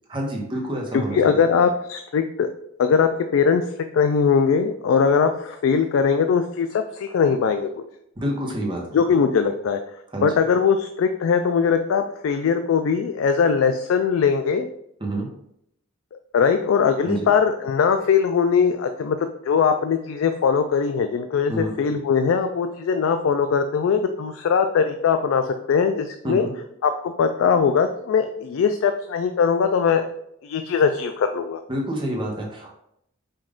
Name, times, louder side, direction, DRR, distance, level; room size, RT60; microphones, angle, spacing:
voice 1, 0.1-1.4 8.2-9.0 10.1-10.3 15.0-15.3 17.0-17.3 21.5-21.7 26.2-26.5 31.7-32.7, right 1 dB, 25° right, -1 dB, 0.9 m, -28 dB
voice 2, 0.9-2.5 2.8-3.7 3.9-7.7 8.9-9.8 10.2-14.7 16.1-26.5 26.8-30.0 30.4-31.6, left 6 dB, 75° left, 7 dB, 0.3 m, -21 dB
5.2 x 2.5 x 3.6 m, 0.75 s
head